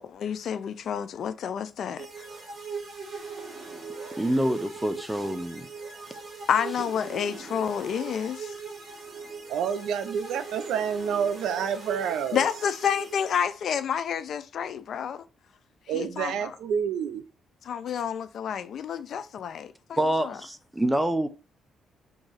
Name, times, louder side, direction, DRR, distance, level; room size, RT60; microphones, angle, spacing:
voice 1, 0.0-2.1 6.5-8.5 12.3-15.2 15.9-16.5 17.6-20.3, left 8 dB, 65° left, 0.4 m, -29 dB
sound 1, 2.0-13.8, right 4 dB, 50° right, 1.4 m, -40 dB
voice 2, 4.2-5.7 20.0-21.3, right 1 dB, 5° right, 0.5 m, -26 dB
voice 3, 9.5-12.4 15.9-17.2, right 7 dB, 80° right, 0.4 m, -28 dB
2.9 x 2.6 x 3.9 m
cardioid pair, 90°, 0 cm